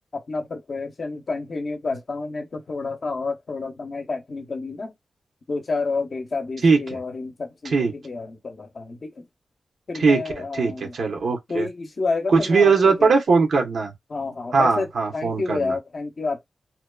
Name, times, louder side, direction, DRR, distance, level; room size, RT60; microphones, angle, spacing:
voice 1, 0.1-4.9 5.5-9.2 9.9-10.9 11.5-13.1 14.1-14.9 15.1-16.4, left 3 dB, 50° left, 0.6 m, -29 dB
voice 2, 10.0-11.7 12.3-13.9 14.5-15.8, right 4 dB, 70° right, 0.9 m, -20 dB
2.7 x 2.2 x 2.3 m
wide cardioid pair, 100°, 0 cm